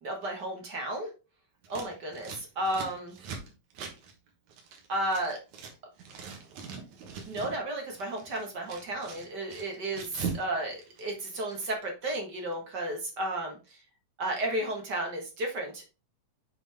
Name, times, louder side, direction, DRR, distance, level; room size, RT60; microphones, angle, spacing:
voice 1, 0.0-1.1 1.7-3.1 4.9-5.4 7.3-10.1 10.3-13.6 14.2-15.9, right 1 dB, 45° right, 1 dB, 1.7 m, -33 dB
Scissors, 1.6-5.7 6.0-7.6 7.9-10.5 10.7-11.6, right 6 dB, 75° right, 2.6 m, -41 dB
7.5 x 4.1 x 3.4 m, 0.30 s
omnidirectional pair, 3.3 m